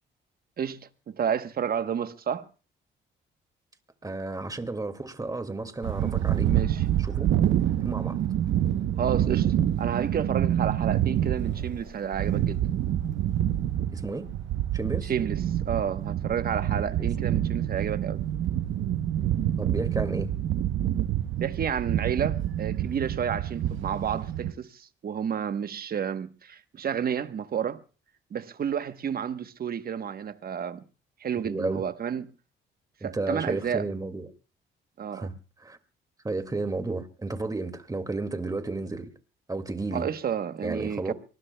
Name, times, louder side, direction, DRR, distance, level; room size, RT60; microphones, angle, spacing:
voice 1, 0.6-2.5 6.0-6.8 9.0-12.6 15.0-18.2 21.4-27.8 28.3-30.8 31.2-32.3 33.0-33.9 35.0-35.3 39.9-41.1, right 8 dB, 50° right, 1.1 m, -31 dB
voice 2, 4.0-6.5 7.0-7.3 7.8-8.2 13.9-14.2 14.7-15.1 16.7-17.1 19.6-20.3 31.4-31.8 33.0-34.3 35.1-35.3 35.6-35.8 36.2-39.1 39.5-40.1 40.6-41.1, right 3 dB, 20° right, 2.1 m, -32 dB
sound 1, 5.8-24.5, right 11 dB, 75° right, 0.9 m, -27 dB
Zipper (clothing), 7.7-8.8 9.1-13.8, left 5 dB, 85° left, 4.8 m, -55 dB
24.5 x 20.0 x 2.2 m
cardioid pair, 90°, 20 cm